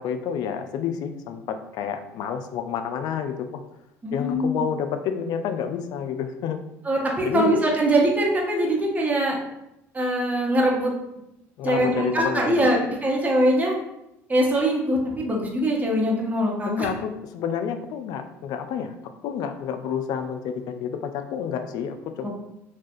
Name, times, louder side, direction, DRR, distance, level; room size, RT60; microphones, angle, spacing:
voice 1, 0.0-3.6 4.1-6.6 7.2-7.5 11.6-12.8 16.7-18.9 19.2-22.3, left 7 dB, 60° left, 8 dB, 0.3 m, -29 dB
voice 2, 4.0-4.7 6.8-9.4 9.9-10.9 11.6-13.7 14.3-16.9 22.2-22.3, right 1 dB, 20° right, -2 dB, 0.9 m, -22 dB
3.3 x 2.3 x 2.6 m, 0.87 s
hypercardioid pair, 70°, 8 cm